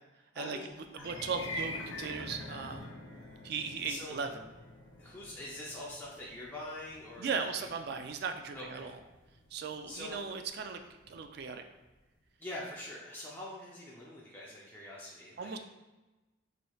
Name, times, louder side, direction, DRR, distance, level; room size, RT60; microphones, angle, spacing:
voice 1, 0.3-1.0 3.9-4.2 5.0-7.7 8.5-8.9 9.9-10.3 12.4-15.6, left 1 dB, 10° left, -6 dB, 0.5 m, -44 dB
sound 1, 0.9-11.3, left 1 dB, 80° left, 0.6 m, -46 dB
voice 2, 0.9-2.9 3.4-4.5 7.2-9.0 9.5-10.8 11.1-11.6 15.4-15.6, right 5 dB, 55° right, 6 dB, 0.3 m, -37 dB
4.1 x 3.1 x 2.3 m, 1.1 s
head